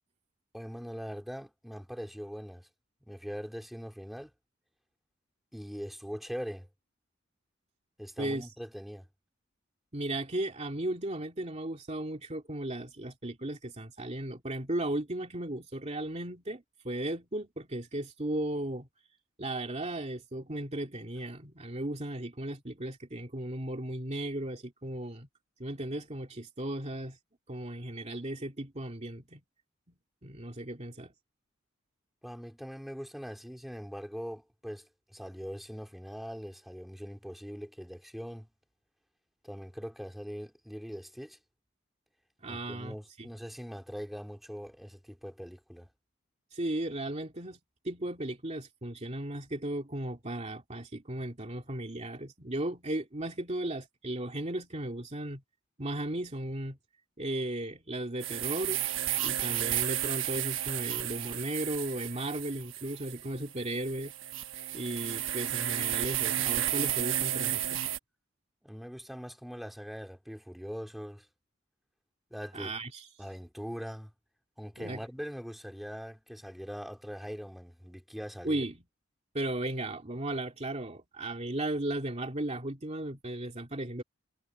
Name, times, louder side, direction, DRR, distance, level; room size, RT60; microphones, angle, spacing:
voice 1, 0.5-2.7 3.1-4.3 5.5-6.7 8.0-9.1 32.2-38.5 39.4-41.4 42.5-45.9 68.6-71.3 72.3-72.7 73.2-74.1 74.6-78.6, equal, ahead, 4.0 m, -42 dB
voice 2, 8.2-8.5 9.9-18.9 19.4-25.3 25.6-27.2 27.5-29.4 30.2-31.1 42.4-43.3 46.5-47.6 47.8-55.4 55.8-56.8 57.2-58.9 59.2-64.1 64.7-67.8 72.5-73.1 74.8-75.0 78.4-78.8 79.3-84.0, right 1 dB, 35° right, 2.6 m, -36 dB
sound 1, 58.2-68.0, right 12 dB, 75° right, 1.0 m, -32 dB
head